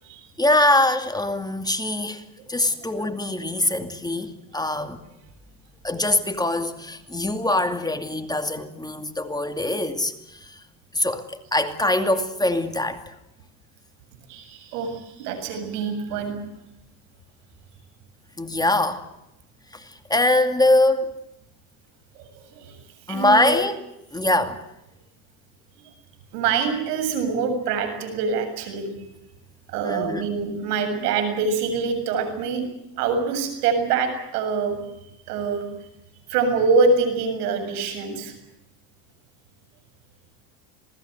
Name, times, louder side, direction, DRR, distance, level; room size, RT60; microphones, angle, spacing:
voice 1, 0.4-2.2 2.5-5.0 5.8-10.6 10.9-13.1 18.4-19.1 19.7-21.1 23.1-23.9 24.1-24.6 29.8-30.2, left 1 dB, 10° left, 2.4 m, -23 dB
voice 2, 14.3-16.3 22.2-22.8 23.1-23.6 26.3-28.9 29.7-32.6 33.0-34.8 35.3-35.6 36.3-38.3, right 4 dB, 90° right, 7.5 m, -25 dB
27.0 x 19.5 x 8.0 m
supercardioid pair, 100°, 45 cm